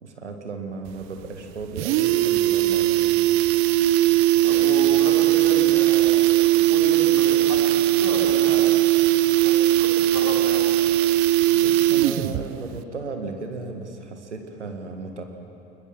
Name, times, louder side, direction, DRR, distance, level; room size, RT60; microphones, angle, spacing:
voice 1, 0.0-3.2 11.5-15.2, right 3 dB, 90° right, 5 dB, 1.9 m, -35 dB
sound 1, 0.9-1.0 1.3-1.4 1.6-12.5 12.7-12.8, right 15 dB, 50° right, 0.7 m, -19 dB
voice 2, 4.4-8.8 9.3-10.7, left 4 dB, 60° left, -1 dB, 4.5 m, -33 dB
22.5 x 21.0 x 7.4 m, 2.7 s
figure-of-eight pair, 65°, 34 cm